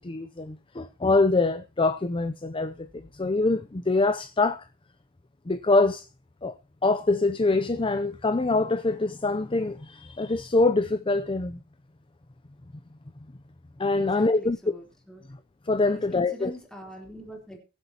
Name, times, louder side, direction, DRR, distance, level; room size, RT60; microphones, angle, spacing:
voice 1, 0.0-4.7 5.5-6.0 6.4-6.5 6.8-11.6 13.8-14.6 15.7-16.5, left 3 dB, 25° left, 0.6 m, -24 dB
voice 2, 14.0-15.2 15.8-17.6, equal, 5° left, 3.7 m, -43 dB
22.0 x 8.0 x 2.9 m
head